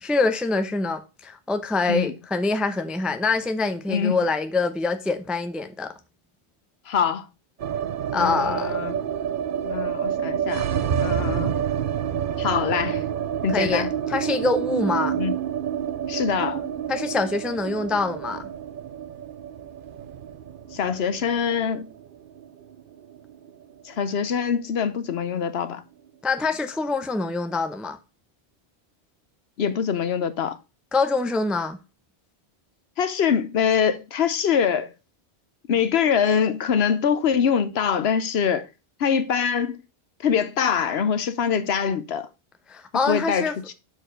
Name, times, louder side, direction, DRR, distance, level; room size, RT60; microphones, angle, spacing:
voice 1, 0.0-5.9 8.1-8.8 13.5-15.2 16.9-18.5 26.2-28.0 30.9-31.8 42.7-43.5, left 3 dB, ahead, 0.5 m, -25 dB
voice 2, 6.9-7.3 8.1-8.9 9.6-10.7 11.0-11.5 12.4-13.1 13.4-13.9 15.2-15.3 16.1-16.6 20.7-21.9 23.8-25.8 29.6-30.6 33.0-34.9 35.7-38.7 39.0-39.8 40.2-42.3 43.1-43.7, left 7 dB, 65° left, 1.0 m, -24 dB
sound 1, 7.6-23.7 24.0-24.1 24.3-25.1, right 9 dB, 55° right, 0.7 m, -28 dB
6.5 x 4.8 x 4.9 m
omnidirectional pair, 1.1 m